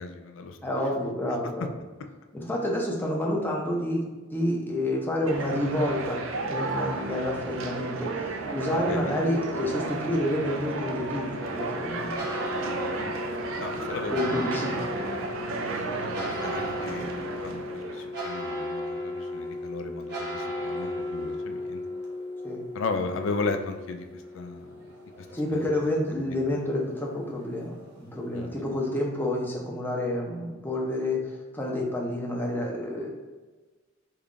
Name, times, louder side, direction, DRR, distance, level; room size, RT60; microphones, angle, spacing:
voice 1, 0.0-0.6 8.7-9.2 13.0-13.1 13.6-14.1 15.4-21.8 22.7-24.1 24.3-24.7 25.5-25.6 26.3-26.4 28.3-28.6, left 4 dB, 70° left, 5 dB, 0.4 m, -35 dB
voice 2, 0.6-1.7 2.3-12.1 14.1-14.9 22.4-22.6 25.3-33.1, left 1 dB, 10° left, -2 dB, 0.6 m, -29 dB
sound 1, 5.3-18.1, right 3 dB, 75° right, 0.4 m, -33 dB
sound 2, 11.3-28.9, left 1 dB, 55° right, 0.9 m, -36 dB
3.6 x 2.3 x 3.6 m, 1.3 s
head